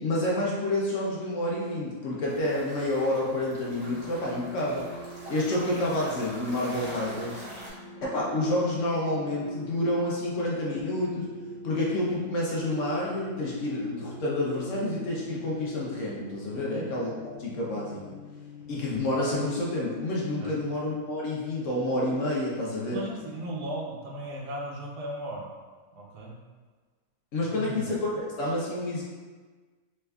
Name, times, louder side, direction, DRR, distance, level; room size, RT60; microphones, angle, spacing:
voice 1, 0.0-4.9 5.3-7.4 8.0-11.3 11.6-17.1 17.4-18.0 18.7-23.0 27.3-29.0, left 1 dB, 65° left, -5 dB, 0.9 m, -29 dB
sound 1, 2.3-7.7, right 1 dB, 35° right, 0.4 m, -44 dB
sound 2, 3.7-19.2, right 1 dB, 35° left, 1.4 m, -44 dB
voice 2, 20.4-20.7 22.9-25.5 25.9-26.3 27.4-27.9, right 1 dB, 85° right, -2 dB, 1.2 m, -37 dB
3.4 x 3.3 x 2.3 m, 1.4 s
omnidirectional pair, 1.7 m